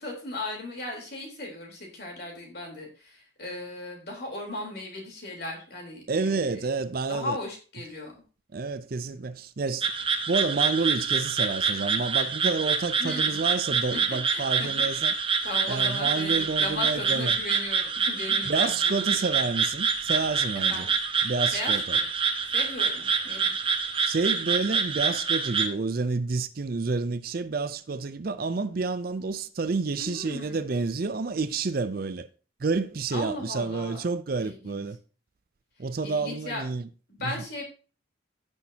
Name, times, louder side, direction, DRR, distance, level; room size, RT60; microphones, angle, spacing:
voice 1, 0.0-6.6 7.1-8.1 13.0-13.4 13.9-15.2 15.4-19.1 20.7-20.9 21.5-22.0 22.5-23.5 30.0-30.6 33.1-34.1 34.4-34.8 36.0-36.6 37.1-37.6, left 2 dB, 55° left, 3.7 m, -37 dB
voice 2, 6.1-7.4 8.5-9.9 10.3-15.1 15.7-17.4 18.5-20.9 21.2-22.0 24.0-32.3 32.6-35.0 35.8-36.9 37.2-37.3, right 4 dB, 45° right, 0.5 m, -29 dB
sound 1, 9.8-25.7, right 5 dB, 25° right, 0.9 m, -26 dB
16.0 x 6.1 x 2.8 m
head